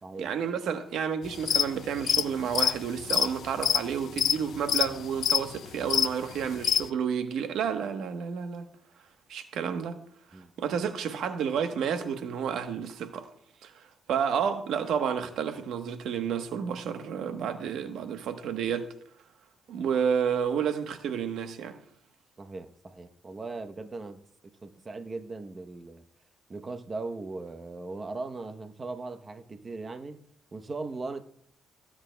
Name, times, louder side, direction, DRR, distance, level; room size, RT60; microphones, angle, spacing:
voice 1, 0.2-8.6 9.3-9.9 10.3-13.3 13.6-18.9 19.7-21.8, right 7 dB, 80° right, 1.0 m, -30 dB
sound 1, 1.3-1.7 2.0-6.9, left 9 dB, 65° left, 0.5 m, -25 dB
voice 2, 22.4-24.2 24.6-26.0 26.5-30.2 30.5-31.3, right 3 dB, 30° right, 0.8 m, -38 dB
17.5 x 8.7 x 2.2 m
cardioid pair, 90°, 0 cm